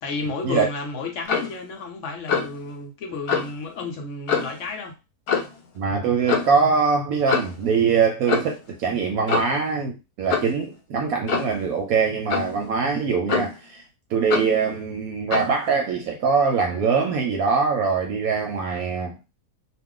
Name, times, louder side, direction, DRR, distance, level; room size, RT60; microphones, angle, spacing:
voice 1, 0.0-5.0, left 3 dB, 60° left, 0.8 m, -32 dB
Clock, 1.3-1.6 2.3-2.6 3.3-3.5 4.3-4.6 5.3-5.6 6.3-6.5 7.3-7.6 8.3-8.6 9.3-9.6 10.3-10.6 11.3-11.6 12.3-12.6 13.3-13.7 14.3-14.6 15.3-15.5, left 6 dB, 85° left, 1.2 m, -25 dB
voice 2, 5.8-13.8 14.1-19.2, right 5 dB, 70° right, 1.0 m, -23 dB
2.4 x 2.4 x 3.6 m
omnidirectional pair, 1.7 m